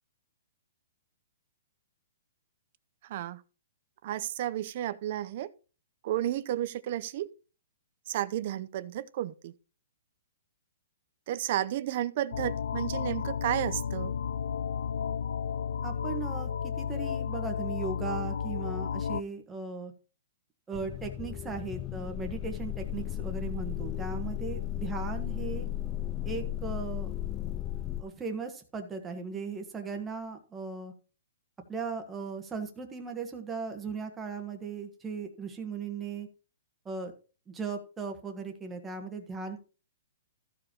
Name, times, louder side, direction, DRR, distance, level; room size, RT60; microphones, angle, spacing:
voice 1, 4.0-5.5 6.0-7.3 8.1-9.5 11.3-14.1, right 12 dB, 45° right, 0.7 m, -32 dB
sound 1, 12.3-19.2, left 7 dB, 90° left, 0.4 m, -33 dB
voice 2, 15.8-19.9 20.7-25.7 26.2-27.1 28.0-30.9 31.7-36.3 36.8-37.1 37.5-39.6, right 5 dB, 10° right, 1.5 m, -37 dB
sound 2, 20.7-28.0, left 13 dB, 20° left, 0.3 m, -35 dB
14.5 x 4.9 x 4.6 m
hypercardioid pair, 165°, 0 cm